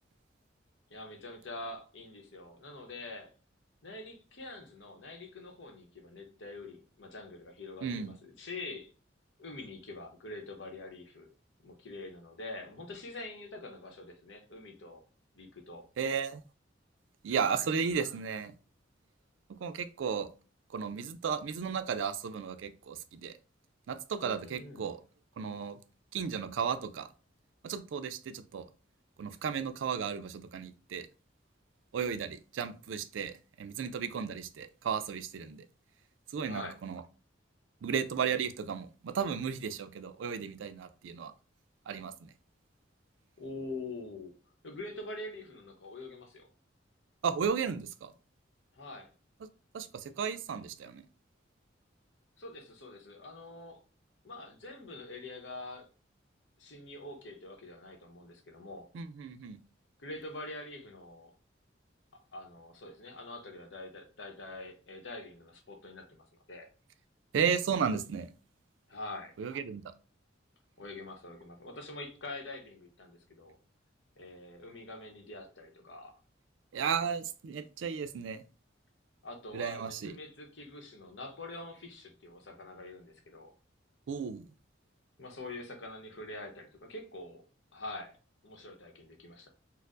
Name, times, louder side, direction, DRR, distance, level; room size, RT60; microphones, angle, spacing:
voice 1, 0.9-3.3 3.8-8.9 9.4-11.3 11.6-15.0 15.3-15.9 17.3-17.7 24.1-24.9 36.4-36.8 43.4-44.3 44.6-46.5 48.7-49.1 52.4-53.8 54.2-55.9 56.6-58.9 60.0-61.3 62.3-66.7 68.9-69.3 70.8-73.6 74.2-76.1 79.2-83.5 85.2-87.4 87.7-88.2 88.4-89.5, left 2 dB, 75° left, 3 dB, 0.8 m, -45 dB
voice 2, 7.8-8.1 16.0-16.4 17.2-18.5 19.5-20.3 20.7-23.3 23.9-25.0 25.4-25.8 26.1-27.1 27.6-28.6 29.2-31.1 31.9-35.6 36.3-37.0 37.8-41.3 41.9-42.3 47.2-48.1 49.7-51.0 58.9-59.6 67.3-68.3 69.4-69.9 76.7-78.4 79.5-80.1 84.1-84.4, right 6 dB, 80° right, 11 dB, 0.4 m, -34 dB
4.3 x 2.0 x 2.5 m, 0.35 s
head